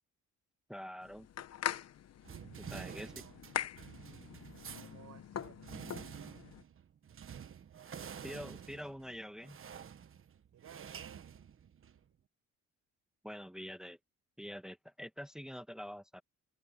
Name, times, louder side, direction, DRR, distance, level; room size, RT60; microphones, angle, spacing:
voice 1, 0.7-1.3 2.7-3.1 8.2-9.6 13.2-14.0 14.4-16.2, equal, ahead, 1.5 m, -45 dB
sound 1, 1.0-6.6, left 10 dB, 55° left, 1.1 m, -43 dB
sound 2, 2.2-12.1, right 8 dB, 45° right, 1.3 m, -49 dB
voice 2, 2.5-3.4 4.7-5.7 10.5-11.3, right 11 dB, 75° right, 6.8 m, -58 dB
open air
cardioid pair, 90°, 30 cm